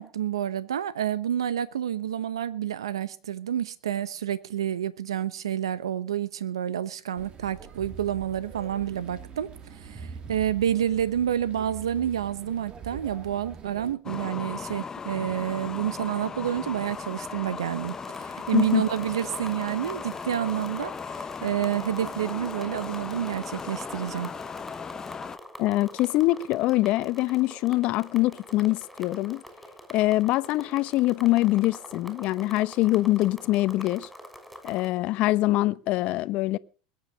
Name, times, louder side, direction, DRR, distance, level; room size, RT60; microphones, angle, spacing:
voice 1, 0.0-24.3, right 10 dB, 90° right, 1.0 m, -29 dB
sound 1, 7.2-14.0, right 6 dB, 35° right, 2.3 m, -43 dB
sound 2, 14.0-25.4, left 5 dB, 25° left, 0.9 m, -37 dB
sound 3, 17.8-34.9, equal, ahead, 6.3 m, -45 dB
voice 2, 18.5-18.8 25.6-29.4 29.9-34.1 34.6-36.6, left 17 dB, 55° left, 1.0 m, -24 dB
21.5 x 9.0 x 6.5 m
hypercardioid pair, 95°, 3 cm